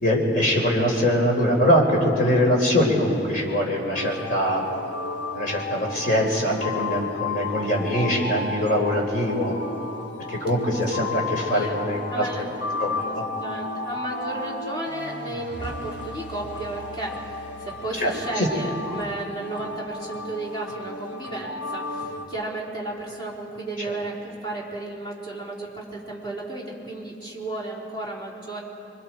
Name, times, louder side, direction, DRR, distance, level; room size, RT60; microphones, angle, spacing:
voice 1, 0.0-4.6 5.3-9.6 10.3-12.3 12.8-13.2 18.0-18.1 18.4-18.5, equal, 50° left, -1 dB, 4.1 m, -22 dB
sound 1, 4.0-22.3, left 3 dB, 75° left, 1.5 m, -33 dB
voice 2, 11.3-12.5 13.3-28.6, right 2 dB, 30° left, -5 dB, 4.1 m, -34 dB
27.0 x 24.0 x 4.6 m, 2.7 s
head